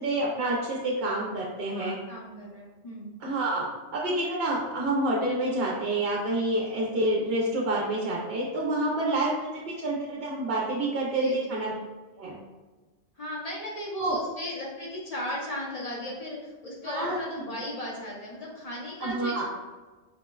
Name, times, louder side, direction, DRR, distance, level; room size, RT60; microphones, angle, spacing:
voice 1, 0.0-1.9 3.2-3.6 3.9-9.5 9.8-11.7 12.2-12.3 14.0-14.2 16.8-17.2 19.0-19.4, right 1 dB, 65° right, -4 dB, 0.8 m, -28 dB
voice 2, 1.7-3.1 11.1-11.7 13.2-19.4, left 1 dB, 40° left, -5 dB, 0.7 m, -36 dB
4.6 x 2.1 x 2.2 m, 1.3 s
omnidirectional pair, 1.1 m